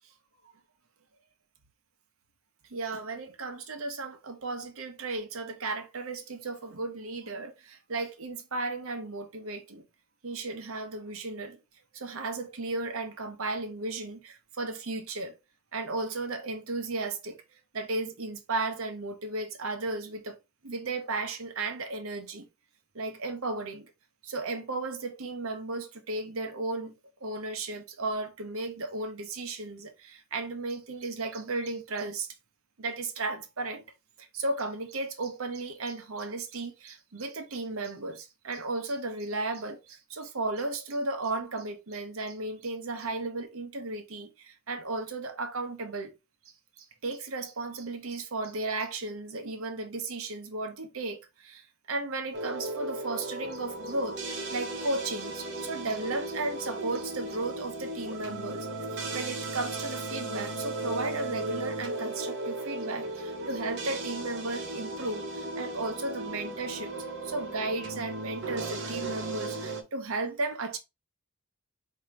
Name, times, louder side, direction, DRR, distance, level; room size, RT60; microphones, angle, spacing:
voice 1, 2.7-9.9 10.2-11.6 11.9-15.4 15.7-17.4 17.7-20.4 20.6-22.5 22.9-23.9 24.2-26.9 27.2-32.3 32.8-33.8 34.2-46.1 46.8-66.9 67.2-70.8, right 2 dB, 75° right, 0.9 m, -35 dB
sound 1, 52.3-69.8, right 2 dB, 55° right, 1.0 m, -36 dB
4.5 x 2.9 x 3.7 m
head